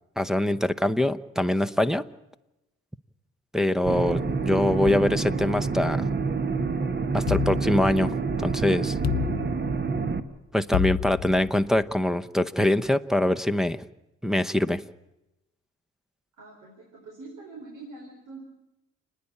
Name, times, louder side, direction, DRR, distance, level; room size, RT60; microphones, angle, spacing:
voice 1, 0.2-2.0 3.5-6.1 7.1-9.0 10.5-13.8 14.2-14.8, left 1 dB, ahead, 15 dB, 0.8 m, -24 dB
sound 1, 3.9-10.2, right 4 dB, 35° right, 1.3 m, -27 dB
sound 2, 7.3-8.4 9.0-10.1 10.7-11.8, left 14 dB, 60° left, 0.7 m, -30 dB
voice 2, 16.4-18.4, right 3 dB, 85° right, 1 dB, 4.5 m, -44 dB
29.5 x 10.0 x 8.6 m, 0.94 s
cardioid pair, 90°, 30 cm